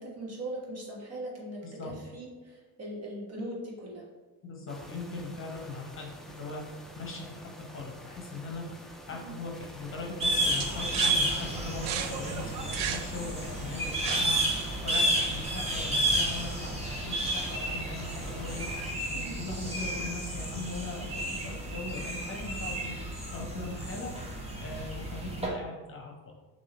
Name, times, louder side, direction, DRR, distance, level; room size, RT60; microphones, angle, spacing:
voice 1, 0.0-4.1 9.1-9.3 19.1-19.4, right 1 dB, 40° right, -2 dB, 1.3 m, -40 dB
voice 2, 1.6-1.9 4.4-16.7 17.0-26.1, left 3 dB, 35° left, 0 dB, 0.9 m, -40 dB
sound 1, 4.7-18.9, equal, ahead, 0.3 m, -47 dB
sound 2, 10.2-25.5, right 1 dB, 15° right, 1.0 m, -31 dB
sound 3, 10.6-15.4, right 8 dB, 80° right, 0.6 m, -37 dB
6.3 x 2.9 x 2.9 m, 1.2 s
cardioid pair, 120°, 38 cm